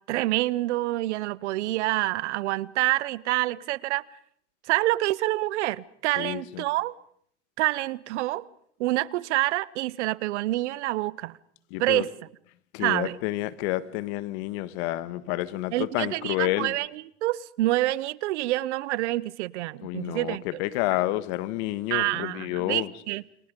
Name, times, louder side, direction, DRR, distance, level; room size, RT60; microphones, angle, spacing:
voice 1, 0.1-4.0 4.7-6.9 7.6-8.5 8.8-11.4 11.8-12.1 12.8-13.2 15.7-16.9 17.2-20.4 21.9-23.2, right 17 dB, 90° right, 0.9 m, -27 dB
voice 2, 6.2-6.6 11.7-12.1 12.7-16.7 19.8-22.9, left 16 dB, 75° left, 1.6 m, -29 dB
29.0 x 25.5 x 5.3 m
supercardioid pair, 95°, 34 cm